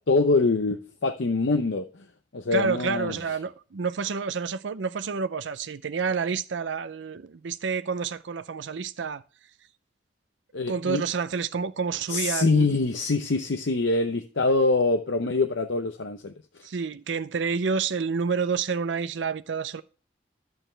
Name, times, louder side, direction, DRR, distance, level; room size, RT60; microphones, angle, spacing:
voice 1, 0.1-1.8 2.3-3.2 10.5-11.0 12.1-16.3, left 3 dB, 80° left, 0.8 m, -24 dB
voice 2, 2.5-9.2 10.7-12.7 16.6-19.8, right 5 dB, 75° right, 0.5 m, -29 dB
11.0 x 8.1 x 3.3 m
head